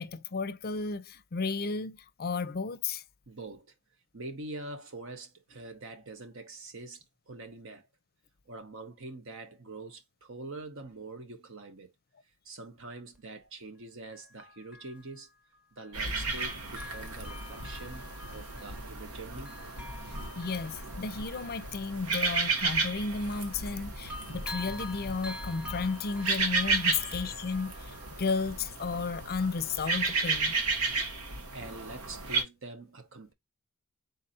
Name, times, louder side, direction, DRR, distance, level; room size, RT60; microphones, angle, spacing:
voice 1, 0.0-3.0 20.1-30.6, left 4 dB, 45° left, 0.5 m, -33 dB
voice 2, 3.3-3.7 4.1-7.9 8.5-11.9 12.4-15.3 15.8-18.0 18.3-19.6 26.9-27.0 31.5-33.3, right 2 dB, 65° right, 1.0 m, -44 dB
Bell, 13.1-13.2 14.1-16.1 16.4-23.8 24.1-28.7 29.1-29.2, left 2 dB, 5° right, 1.0 m, -48 dB
sound 1, 15.9-32.4, right 3 dB, 90° right, 1.2 m, -33 dB
4.0 x 2.7 x 4.0 m
head